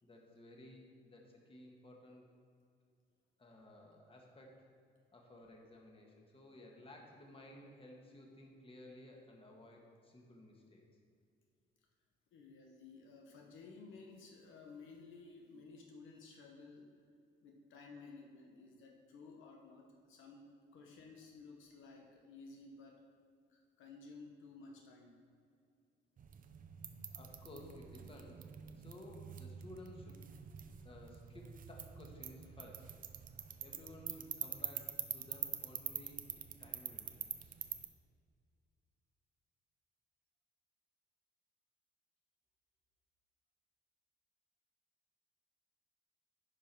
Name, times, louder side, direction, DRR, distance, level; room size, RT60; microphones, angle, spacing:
voice 1, 0.0-2.3 3.4-4.7 5.1-10.8 27.1-28.5 28.7-30.3 30.8-33.0 33.6-37.5, left 1 dB, 25° left, -1 dB, 1.6 m, -56 dB
voice 2, 12.3-17.0 17.4-23.1 23.5-25.2 26.3-26.4, left 4 dB, 80° left, 1 dB, 1.0 m, -55 dB
sound 1, 26.2-37.9, right 7 dB, 45° right, 0.6 m, -46 dB
10.0 x 5.2 x 4.5 m, 2.3 s
cardioid pair, 90°, 20 cm